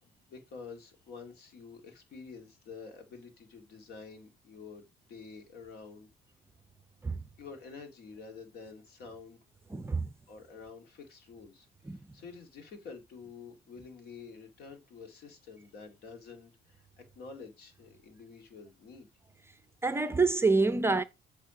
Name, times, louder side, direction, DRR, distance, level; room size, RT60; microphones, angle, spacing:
voice 1, 0.0-6.1 7.4-9.4 10.3-19.1, left 5 dB, 70° left, 2.1 m, -49 dB
voice 2, 9.7-10.1 11.9-12.0 19.8-21.0, right 3 dB, 15° right, 0.6 m, -26 dB
8.5 x 3.4 x 4.9 m
cardioid pair, 110°, 17 cm